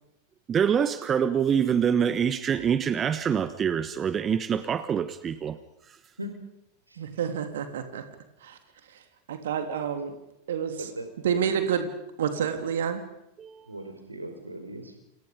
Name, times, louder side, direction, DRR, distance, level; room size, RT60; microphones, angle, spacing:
voice 1, 0.5-5.6 5.9-6.0 13.4-13.7, right 8 dB, 25° right, 1.3 m, -25 dB
voice 2, 7.0-8.0 8.4-8.6 9.3-10.2 10.5-10.9 11.2-11.9 12.2-13.0, right 8 dB, 60° right, 3.2 m, -28 dB
voice 3, 10.8-11.6 13.7-15.0, right 1 dB, 80° right, 4.9 m, -39 dB
29.5 x 27.5 x 5.3 m
figure-of-eight pair, 90°, 0 cm